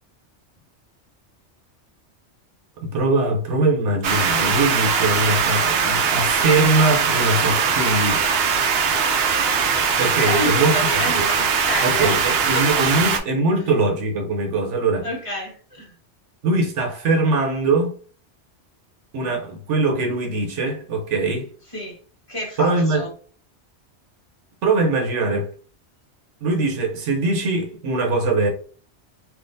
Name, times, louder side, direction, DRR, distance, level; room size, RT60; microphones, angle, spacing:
voice 1, 2.8-8.2 10.0-11.0 11.8-15.1 16.4-18.0 19.1-21.5 22.6-23.1 24.6-25.5 26.4-28.5, right 2 dB, 90° right, 1.1 m, -21 dB
sound 1, 4.0-13.2, right 6 dB, 65° right, 0.8 m, -20 dB
voice 2, 10.2-12.2 12.5-12.6 12.9-13.0 15.0-16.0 21.7-22.0 22.3-23.1, left 1 dB, 30° left, 1.3 m, -29 dB
3.5 x 2.5 x 2.6 m
omnidirectional pair, 1.2 m